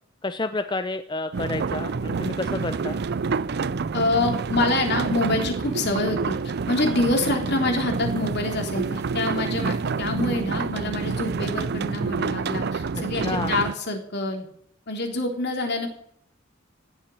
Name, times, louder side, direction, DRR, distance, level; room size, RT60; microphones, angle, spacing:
voice 1, 0.2-3.0 13.1-13.5, left 2 dB, 25° left, 9 dB, 0.6 m, -30 dB
sound 1, 1.3-13.7, right 4 dB, 55° right, 0.5 m, -28 dB
voice 2, 3.9-6.4 6.7-14.4 14.9-15.9, left 2 dB, 60° left, 3 dB, 3.4 m, -26 dB
17.5 x 7.3 x 9.2 m, 0.68 s
head